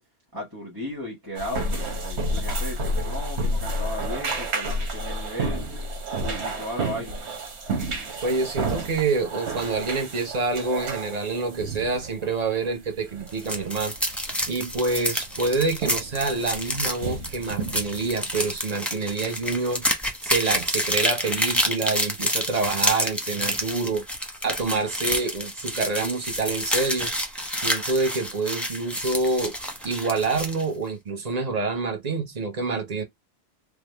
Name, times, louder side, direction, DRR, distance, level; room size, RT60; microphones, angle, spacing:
voice 1, 0.3-5.7 6.2-7.2, left 1 dB, 20° right, 1.3 m, -35 dB
sound 1, 1.3-18.6, right 1 dB, 90° right, 1.3 m, -31 dB
voice 2, 8.2-13.9 14.5-19.9 20.2-24.0 24.4-27.1 27.5-29.5 29.8-33.0, right 3 dB, 40° right, 0.9 m, -27 dB
sound 2, 13.3-30.6, equal, ahead, 0.8 m, -28 dB
3.5 x 2.1 x 3.3 m
omnidirectional pair, 1.1 m